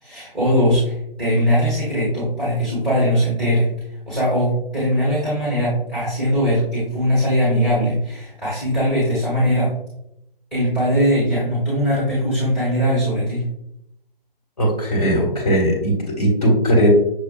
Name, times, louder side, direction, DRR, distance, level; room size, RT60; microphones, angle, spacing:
voice 1, 0.0-3.7 4.1-9.7 10.5-13.5, equal, ahead, -9 dB, 0.8 m, -20 dB
voice 2, 14.6-16.9, equal, 40° left, -3 dB, 1.5 m, -18 dB
6.0 x 2.3 x 2.3 m, 0.79 s
figure-of-eight pair, 145°, 29 cm